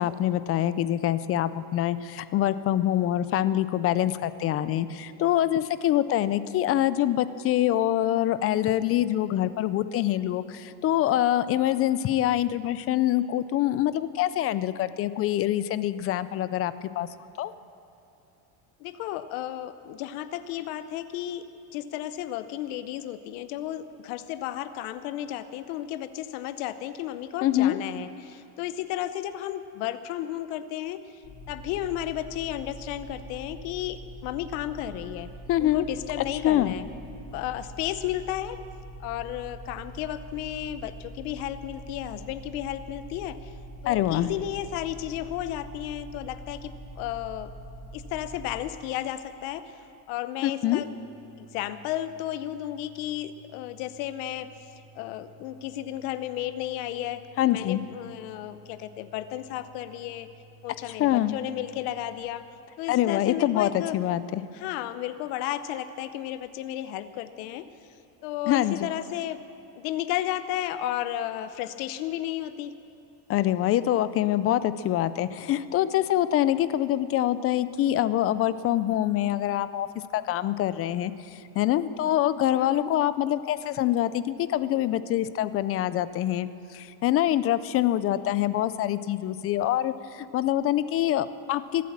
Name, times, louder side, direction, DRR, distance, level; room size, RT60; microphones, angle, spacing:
voice 1, 0.0-17.1 17.4-17.5 27.4-27.8 35.5-35.9 36.4-36.7 43.9-44.3 50.4-50.8 57.4-57.8 61.0-61.4 62.9-64.4 68.5-68.8 73.3-79.9 80.1-91.9, left 12 dB, 35° left, 15 dB, 0.4 m, -25 dB
voice 2, 18.8-21.4 21.7-31.2 31.5-35.3 35.6-36.8 37.3-38.6 39.0-43.5 43.8-47.5 47.9-49.7 50.1-50.9 51.4-54.5 54.9-57.2 57.5-60.3 60.6-62.5 62.8-64.0 64.5-67.7 68.2-69.4 69.8-72.7 82.5-82.9, left 12 dB, 85° left, 12 dB, 0.8 m, -33 dB
sound 1, 31.2-48.6, right 1 dB, 50° left, 2.4 m, -43 dB
sound 2, 50.7-62.2, right 1 dB, 75° right, 2.5 m, -55 dB
23.0 x 8.5 x 7.3 m, 2.7 s
cardioid pair, 145°, 43 cm